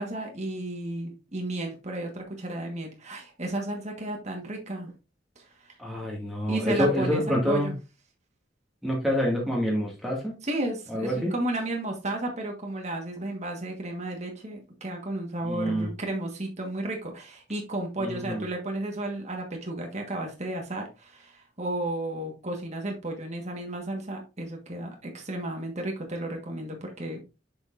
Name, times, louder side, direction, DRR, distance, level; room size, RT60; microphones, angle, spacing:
voice 1, 0.0-4.9 5.4-5.7 6.5-7.7 10.4-27.2, right 1 dB, 40° right, 2 dB, 1.5 m, -33 dB
voice 2, 5.8-7.7 8.8-10.4 10.9-11.3 15.4-15.9 18.0-18.5, equal, ahead, -3 dB, 2.0 m, -27 dB
6.9 x 6.3 x 2.6 m, 0.29 s
head